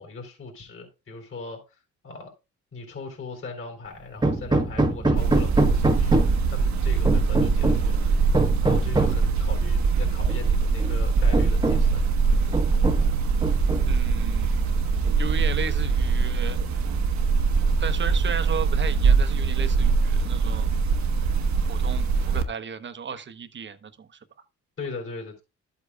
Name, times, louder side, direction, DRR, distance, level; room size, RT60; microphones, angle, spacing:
voice 1, 0.0-1.6 2.0-2.3 2.7-8.0 8.6-12.0 24.8-25.4, left 3 dB, 45° left, 3.9 m, -39 dB
Hammer, 4.2-6.5 7.1-7.9 8.3-9.3 10.3-10.4 10.8-10.9 11.3-12.0 12.5-13.1 13.4-14.1, right 2 dB, 15° right, 1.1 m, -24 dB
sound 1, 5.1-22.4, right 5 dB, 65° right, 1.2 m, -22 dB
voice 2, 13.9-14.7 15.2-16.7 17.8-20.8 21.2-21.4 21.6-24.3, right 6 dB, 40° right, 1.0 m, -35 dB
12.0 x 8.3 x 2.3 m
cardioid pair, 90°, 30 cm